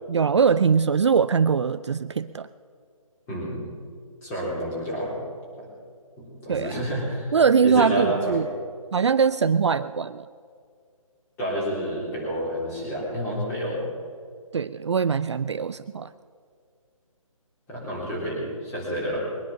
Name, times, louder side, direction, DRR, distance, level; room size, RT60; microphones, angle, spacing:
voice 1, 0.1-2.5 6.5-6.8 7.3-8.5 8.9-10.3 14.5-16.1, right 6 dB, 55° right, 13 dB, 0.4 m, -22 dB
voice 2, 3.3-3.7 4.2-5.2 5.6-5.7 6.2-7.3 7.6-8.4 11.4-13.8 17.7-19.2, equal, 10° left, -6 dB, 3.7 m, -29 dB
21.5 x 10.5 x 5.8 m, 2.1 s
hypercardioid pair, 165°, 18 cm